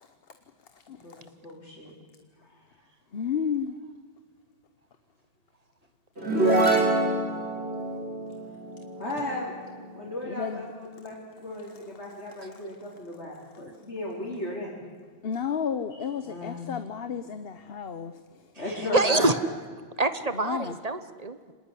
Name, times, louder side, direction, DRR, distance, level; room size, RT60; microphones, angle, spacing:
voice 1, 0.9-1.9 2.4-2.6 9.0-9.5 9.9-14.8 15.9-16.7 18.6-19.3, left 1 dB, 80° left, -5 dB, 4.8 m, -36 dB
voice 2, 3.1-3.8 10.3-10.6 15.2-18.1 18.9-19.0 20.4-20.7, left 7 dB, 60° left, 9 dB, 1.1 m, -31 dB
sound 1, 6.2-9.8, right 2 dB, 70° right, 3.9 m, -26 dB
voice 3, 18.9-19.3 20.0-21.5, right 2 dB, 35° right, 11 dB, 1.2 m, -25 dB
25.0 x 19.0 x 9.9 m, 1.5 s
omnidirectional pair, 1.1 m